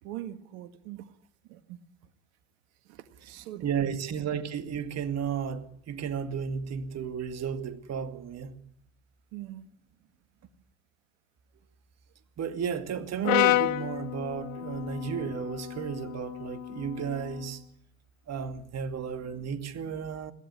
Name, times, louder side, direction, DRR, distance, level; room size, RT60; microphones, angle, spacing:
voice 1, 0.0-1.1 1.5-1.8 2.9-3.9 9.3-9.7, right 13 dB, 65° right, 1.8 m, -42 dB
voice 2, 3.6-8.5 12.4-17.6 18.3-20.3, right 7 dB, 40° right, 2.3 m, -33 dB
Brass instrument, 13.2-17.5, left 16 dB, 70° left, 1.0 m, -30 dB
22.0 x 16.5 x 9.9 m
hypercardioid pair, 85°, 41 cm